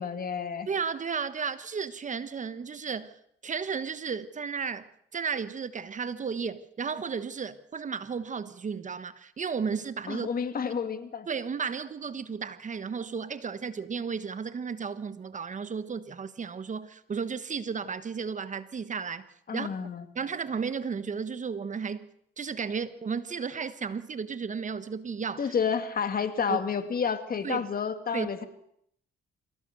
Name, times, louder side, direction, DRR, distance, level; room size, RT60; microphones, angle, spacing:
voice 1, 0.0-0.7 10.1-11.3 19.5-20.1 25.4-28.5, left 6 dB, 45° left, 2.4 m, -30 dB
voice 2, 0.7-3.1 3.4-10.3 11.3-19.3 19.5-19.7 20.1-22.1 22.4-25.5 26.5-26.6 27.4-27.6 28.1-28.3, right 6 dB, 40° right, 1.2 m, -33 dB
25.0 x 16.0 x 6.8 m
cardioid pair, 90°, 20 cm